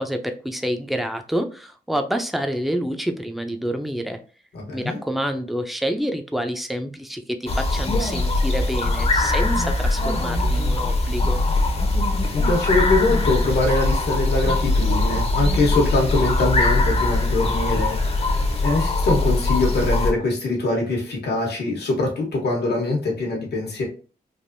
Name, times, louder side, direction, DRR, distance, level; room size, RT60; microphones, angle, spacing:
voice 1, 0.0-4.2 4.7-11.4, equal, ahead, 6 dB, 0.5 m, -27 dB
voice 2, 4.5-5.0 12.3-23.8, left 2 dB, 80° left, -1 dB, 1.1 m, -23 dB
sound 1, 7.5-20.1, left 2 dB, 35° left, 0.7 m, -21 dB
3.3 x 2.5 x 2.5 m, 0.37 s
wide cardioid pair, 95°, 17 cm